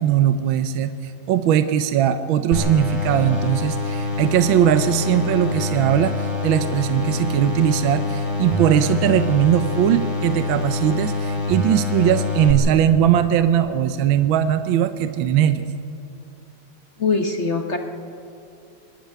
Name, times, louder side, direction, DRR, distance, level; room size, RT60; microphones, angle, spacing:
voice 1, 0.0-15.6, right 10 dB, 75° right, 10 dB, 1.4 m, -19 dB
sound 1, 2.5-12.5, left 3 dB, 25° left, 3.4 m, -25 dB
voice 2, 17.0-17.8, left 4 dB, 45° left, 4 dB, 1.0 m, -22 dB
24.0 x 11.5 x 9.3 m, 2.6 s
omnidirectional pair, 2.3 m